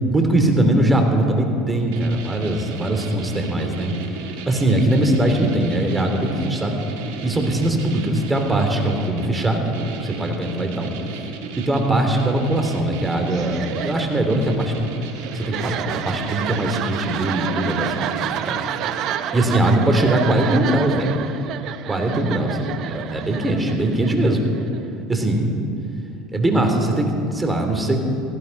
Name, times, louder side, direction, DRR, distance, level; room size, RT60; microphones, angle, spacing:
voice 1, 0.1-3.9 4.5-6.8 7.2-9.6 10.0-10.9 11.6-14.8 15.3-18.6 19.3-21.2 21.9-22.5 22.9-24.4 25.1-25.5 26.3-28.0, right 1 dB, 15° right, 4 dB, 3.0 m, -21 dB
sound 1, 1.9-19.6, right 5 dB, 75° right, 2.1 m, -35 dB
sound 2, 13.3-24.9, right 10 dB, 55° right, 0.7 m, -30 dB
17.0 x 15.5 x 5.4 m, 2.6 s
hypercardioid pair, 90°, 0 cm